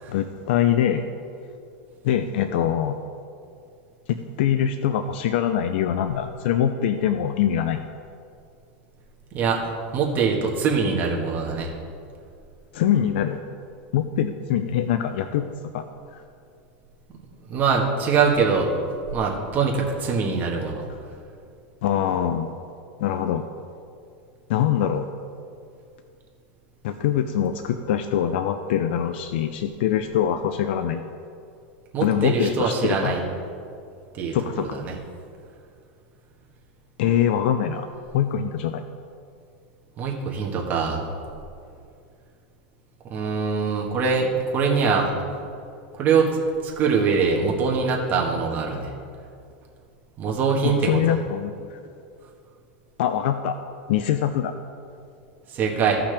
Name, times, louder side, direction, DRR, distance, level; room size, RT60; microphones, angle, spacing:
voice 1, 0.1-1.0 2.0-3.0 4.1-7.9 12.7-13.4 13.9-15.8 16.1-16.2 21.8-22.5 23.0-23.5 24.5-25.1 26.8-31.1 32.0-33.2 34.3-34.9 37.0-37.9 38.1-38.8 50.6-51.8 53.0-53.6 53.9-54.5, left 9 dB, 70° left, 8 dB, 0.5 m, -23 dB
voice 2, 9.3-11.7 17.5-18.7 19.1-20.8 31.9-33.2 34.1-34.9 40.0-41.0 43.0-45.1 46.0-46.4 46.6-48.9 50.2-51.2 55.5-56.0, right 5 dB, 30° right, -1 dB, 1.5 m, -23 dB
15.5 x 5.8 x 3.4 m, 2.4 s
supercardioid pair, 145°, 6 cm